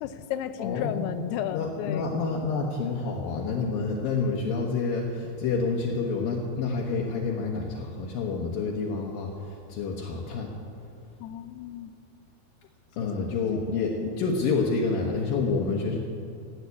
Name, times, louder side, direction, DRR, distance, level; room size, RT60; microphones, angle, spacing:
voice 1, 0.0-2.1 11.2-11.9 13.0-13.1 13.5-13.6 14.1-14.2, left 10 dB, 85° left, 11 dB, 2.8 m, -33 dB
voice 2, 0.6-1.1 1.5-10.5 13.0-16.0, left 4 dB, 70° left, -2 dB, 2.8 m, -28 dB
17.0 x 9.8 x 8.4 m, 2.6 s
omnidirectional pair, 4.6 m